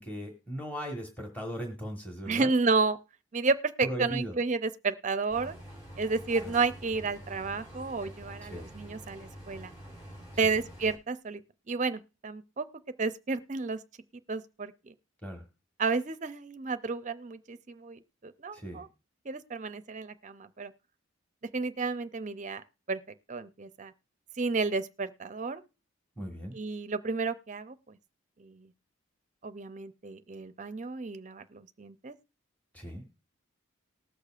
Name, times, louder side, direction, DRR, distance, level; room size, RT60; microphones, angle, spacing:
voice 1, 0.0-2.5 3.8-4.3 6.4-6.5 8.4-8.7 10.4-10.5 15.2-15.4 18.5-18.8 26.2-26.5 32.7-33.0, equal, 5° left, 1.3 m, -38 dB
voice 2, 2.3-3.0 3.3-5.6 6.0-9.7 10.4-11.4 11.7-12.7 13.0-13.8 14.3-14.9 15.8-18.9 19.2-20.7 21.5-23.0 23.3-23.9 24.4-25.6 26.5-28.0 28.4-28.7 29.4-32.2, right 4 dB, 35° right, 0.5 m, -31 dB
sound 1, 5.3-11.0, equal, 40° left, 3.4 m, -47 dB
19.5 x 6.6 x 2.4 m
head